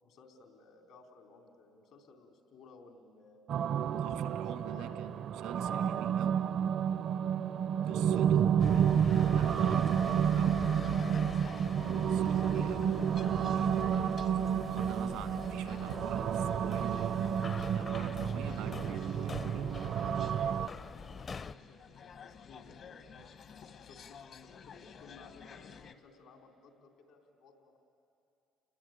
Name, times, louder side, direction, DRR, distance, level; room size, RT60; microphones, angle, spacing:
voice 1, 0.0-3.4 4.0-5.3 7.7-8.3 12.3-13.0 20.4-23.2 23.8-27.8, left 4 dB, 80° left, 3 dB, 3.6 m, -58 dB
sound 1, 3.5-20.7, right 8 dB, 60° right, 0.5 m, -30 dB
voice 2, 3.9-6.4 7.8-10.7 11.8-12.9 13.5-14.0 14.7-17.1 17.7-19.6 20.0-20.1, right 10 dB, 85° right, 9 dB, 1.4 m, -45 dB
sound 2, 8.6-21.5, left 4 dB, 40° left, 0.6 m, -43 dB
sound 3, 10.8-25.9, left 6 dB, 60° left, 1.2 m, -53 dB
29.5 x 21.0 x 9.4 m, 2.8 s
supercardioid pair, 80°, 0 cm